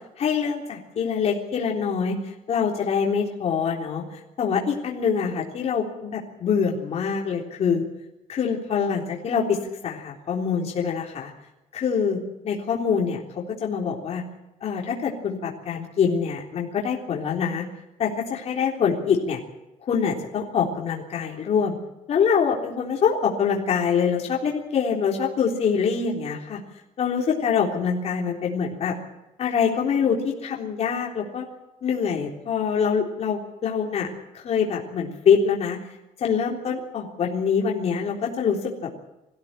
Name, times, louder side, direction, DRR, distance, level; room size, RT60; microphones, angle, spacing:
voice 1, 0.2-2.1 2.5-4.0 4.4-7.8 8.3-11.3 11.7-12.2 12.4-14.2 14.6-17.7 18.0-19.4 19.9-21.8 22.1-26.6 27.0-28.9 29.4-31.4 31.8-35.8 36.2-38.9, left 6 dB, 50° left, -1 dB, 3.7 m, -24 dB
22.5 x 16.0 x 8.9 m, 0.95 s
cardioid pair, 150°, 14 cm